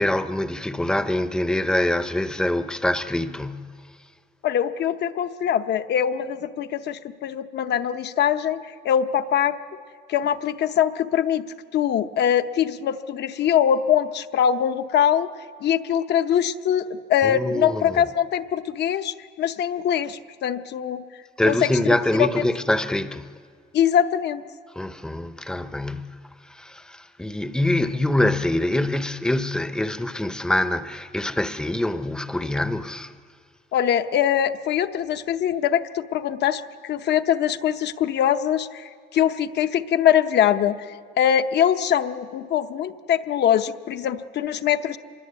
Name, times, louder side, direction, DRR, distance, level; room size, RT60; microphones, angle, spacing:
voice 1, 0.0-3.7 17.2-18.0 21.4-23.3 24.8-26.2 26.5-33.1, left 1 dB, 5° left, 0.6 m, -24 dB
voice 2, 4.4-9.6 10.1-11.5 11.7-15.3 15.6-21.0 21.4-22.4 23.7-24.4 33.7-45.0, left 9 dB, 70° left, 0.8 m, -23 dB
26.5 x 22.0 x 8.2 m
cardioid pair, 180°, 18 cm